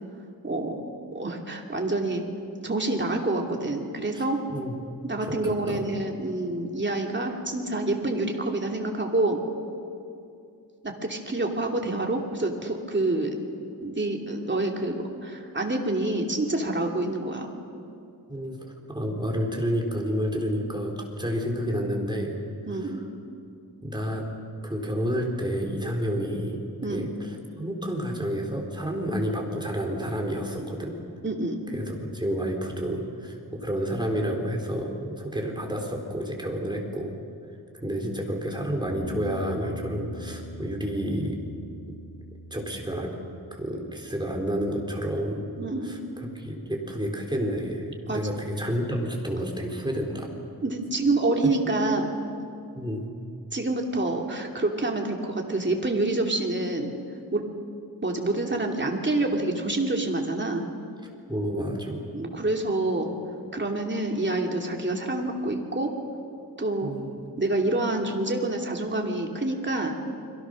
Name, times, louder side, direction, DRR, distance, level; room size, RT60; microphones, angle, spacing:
voice 1, 0.4-0.8 1.1-2.2 2.6-4.4 5.0-9.4 10.8-13.4 13.8-17.5 22.7-23.0 26.8-27.1 31.2-31.6 45.6-46.0 48.1-48.2 50.6-52.1 53.5-56.9 57.3-57.5 58.0-60.7 62.1-63.1 63.5-65.9 66.6-66.9 67.4-69.9, right 2 dB, 30° right, 1 dB, 2.8 m, -27 dB
voice 2, 5.2-5.9 18.3-22.4 22.7-23.1 23.8-24.3 24.6-26.6 26.9-30.9 31.7-37.1 37.8-41.4 42.5-43.1 43.5-45.5 45.8-50.3 51.4-51.5 52.8-53.1 61.3-62.0 66.8-67.3, equal, 10° right, 1 dB, 3.9 m, -30 dB
Bass guitar, 38.9-43.6 43.9-45.1, left 1 dB, 80° left, 7.4 m, -42 dB
29.5 x 23.0 x 6.5 m, 2.5 s
wide cardioid pair, 120°, 39 cm